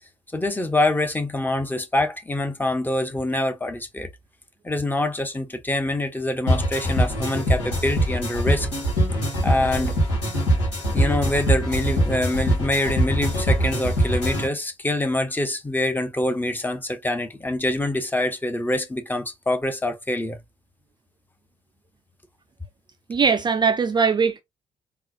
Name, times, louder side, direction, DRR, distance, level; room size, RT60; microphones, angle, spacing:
voice 1, 0.3-4.1 4.6-8.7 9.4-10.0 10.9-20.4, left 1 dB, 10° left, 0.9 m, -25 dB
sound 1, 6.5-14.5, equal, 80° left, 1.4 m, -23 dB
voice 2, 23.1-24.4, right 5 dB, 30° right, 0.4 m, -20 dB
3.8 x 2.3 x 2.7 m
figure-of-eight pair, 40°, 15 cm